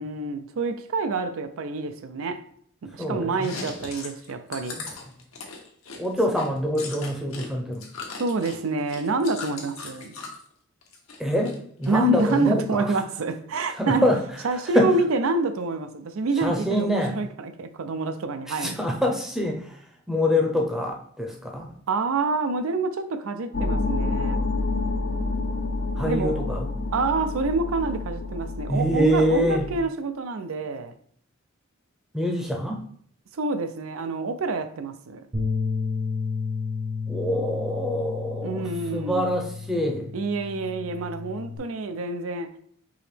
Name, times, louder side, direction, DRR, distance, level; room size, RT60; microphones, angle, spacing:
voice 1, 0.0-2.5 2.8-4.8 8.2-10.1 11.9-14.0 14.4-17.3 17.6-18.7 21.9-24.4 26.0-26.3 26.9-30.9 33.3-35.2 38.4-39.3 40.1-42.5, right 3 dB, 80° right, 0.5 m, -27 dB
voice 2, 2.9-3.7 4.8-4.9 6.0-7.9 11.2-12.9 13.7-14.9 16.3-17.2 18.5-21.7 25.9-26.7 28.7-29.7 32.1-32.9 37.1-40.1, equal, ahead, 0.6 m, -25 dB
Chewing mastication, 3.3-7.5 7.7-10.4 10.8-11.6 11.8-12.7, left 4 dB, 80° left, 1.0 m, -39 dB
sound 1, 23.5-29.8, left 3 dB, 55° left, 0.4 m, -28 dB
Bass guitar, 35.3-41.6, left 5 dB, 40° right, 0.8 m, -31 dB
4.8 x 2.9 x 3.3 m
head